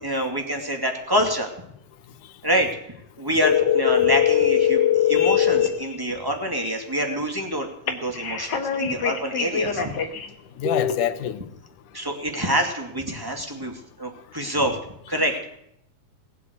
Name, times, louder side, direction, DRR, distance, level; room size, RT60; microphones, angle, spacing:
voice 1, 0.0-1.5 2.4-2.7 3.2-9.9 11.9-14.8 15.1-15.3, equal, 10° right, 3 dB, 2.0 m, -26 dB
sound 1, 3.4-5.7 7.9-10.3 10.6-10.9, left 9 dB, 40° left, 1.8 m, -21 dB
voice 2, 10.6-11.4, left 11 dB, 85° left, 10 dB, 2.5 m, -27 dB
19.0 x 8.4 x 8.1 m, 0.75 s
omnidirectional pair, 3.5 m